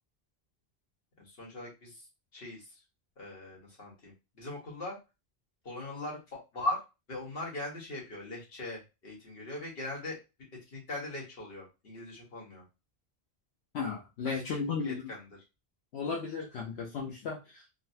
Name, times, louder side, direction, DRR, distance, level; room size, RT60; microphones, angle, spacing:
voice 1, 1.2-2.1 2.3-2.7 3.2-5.0 5.6-6.8 7.1-10.2 10.7-12.6 14.2-14.4 14.7-15.3, left 2 dB, 65° left, -2 dB, 1.5 m, -40 dB
voice 2, 13.7-15.1 15.9-17.6, left 5 dB, 85° left, -1 dB, 1.0 m, -35 dB
3.9 x 2.0 x 2.7 m, 0.26 s
omnidirectional pair, 1.1 m